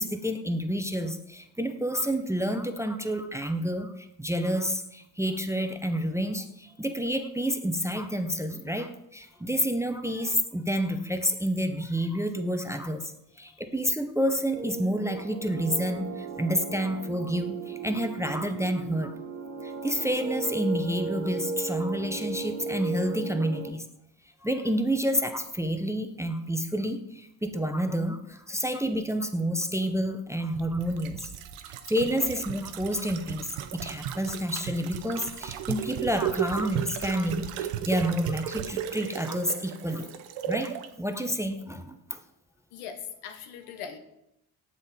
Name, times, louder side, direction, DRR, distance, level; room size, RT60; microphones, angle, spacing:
voice 1, 0.0-13.1 13.4-19.1 19.6-23.8 24.4-31.3 31.9-40.1 40.5-42.2, equal, 5° right, 7 dB, 0.5 m, -29 dB
sound 1, 14.5-23.7, right 3 dB, 30° right, 0.8 m, -36 dB
sound 2, 30.5-40.9 41.2-41.3, right 10 dB, 85° right, 0.7 m, -35 dB
voice 2, 31.4-32.2 40.4-40.5 42.7-44.0, left 7 dB, 85° left, 8 dB, 0.9 m, -43 dB
7.3 x 4.0 x 3.9 m, 0.81 s
supercardioid pair, 60°, 48 cm